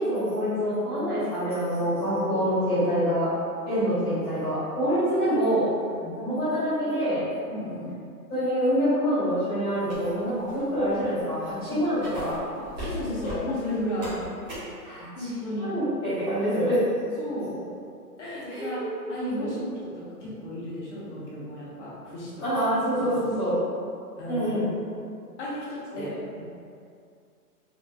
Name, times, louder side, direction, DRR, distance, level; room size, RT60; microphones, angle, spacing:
voice 1, 0.0-3.3 3.7-5.7 6.2-7.2 8.3-12.3 14.8-15.3 15.6-16.8 18.2-18.8 19.3-19.5 22.4-23.5 24.3-24.7 25.9-26.0, equal, 15° left, -18 dB, 0.8 m, -26 dB
voice 2, 5.9-6.2 7.5-7.9 11.7-11.8 12.6-14.2 15.1-15.7 17.2-17.6 18.2-22.5 22.8-23.7 24.2-24.5 25.4-26.4, left 1 dB, 50° left, -7 dB, 1.0 m, -34 dB
sound 1, 9.8-14.8, equal, 25° right, 1.0 m, -39 dB
3.8 x 2.3 x 2.2 m, 2.4 s
hypercardioid pair, 165°, 47 cm